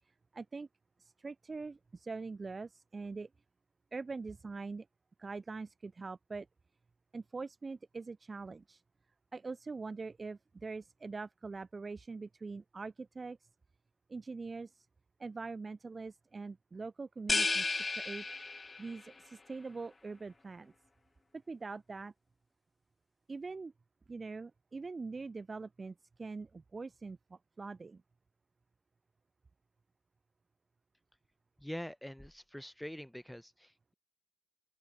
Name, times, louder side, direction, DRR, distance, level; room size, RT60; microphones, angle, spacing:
voice 1, 0.3-0.7 1.0-3.3 3.9-4.9 5.2-6.5 7.1-8.8 9.3-13.4 14.1-14.9 15.2-18.2 18.8-20.7 21.5-22.1 23.3-23.7 24.1-28.0, right 4 dB, 25° right, 0.6 m, -43 dB
sound 1, 17.3-19.0, left 3 dB, 20° left, 0.5 m, -33 dB
voice 2, 31.6-33.9, equal, 5° left, 1.4 m, -45 dB
open air
figure-of-eight pair, 55°, 0 cm